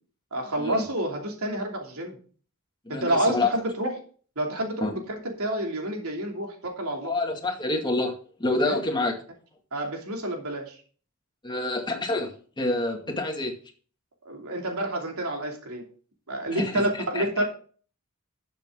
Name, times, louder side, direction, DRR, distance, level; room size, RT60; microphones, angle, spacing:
voice 1, 0.3-2.2 2.9-3.9 4.4-7.2 8.6-8.8 9.7-10.8 14.2-15.8 16.3-17.4, right 1 dB, 90° right, 2 dB, 2.8 m, -29 dB
voice 2, 2.9-3.5 4.8-4.9 7.0-9.2 11.4-13.5 16.5-16.7 17.1-17.2, left 2 dB, 20° left, 2 dB, 2.3 m, -27 dB
12.5 x 7.4 x 3.8 m, 0.42 s
head